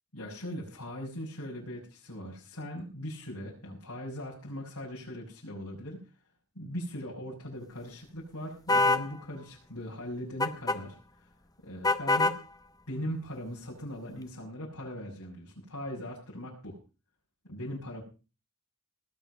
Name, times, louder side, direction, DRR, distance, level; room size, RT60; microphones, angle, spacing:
voice 1, 0.1-6.0 6.5-11.3 11.6-12.4 12.9-16.8 17.5-18.0, equal, 70° left, -5 dB, 6.4 m, -40 dB
sound 1, 8.7-9.1 10.4-10.8 11.8-12.4, left 2 dB, 15° left, 0.9 m, -24 dB
19.5 x 9.0 x 5.5 m, 0.34 s
head